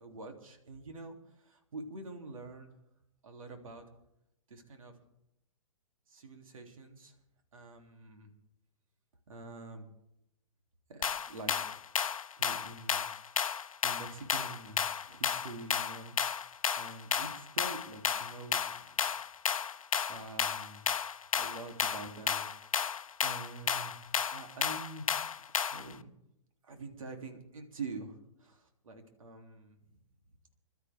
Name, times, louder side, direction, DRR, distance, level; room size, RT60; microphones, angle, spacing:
voice 1, 0.0-2.7 3.2-3.8 4.5-4.9 6.1-7.1 7.5-8.3 9.3-9.9 10.9-11.8 12.4-13.0 13.8-16.2 16.6-19.1 19.7-20.8 21.4-22.5 22.8-25.3 25.7-26.1 26.6-30.0, right 3 dB, 75° right, 4 dB, 3.3 m, -46 dB
sound 1, 11.0-25.9, left 7 dB, 80° left, 0.8 m, -33 dB
27.0 x 12.5 x 3.7 m, 0.83 s
hypercardioid pair, 120°, 17 cm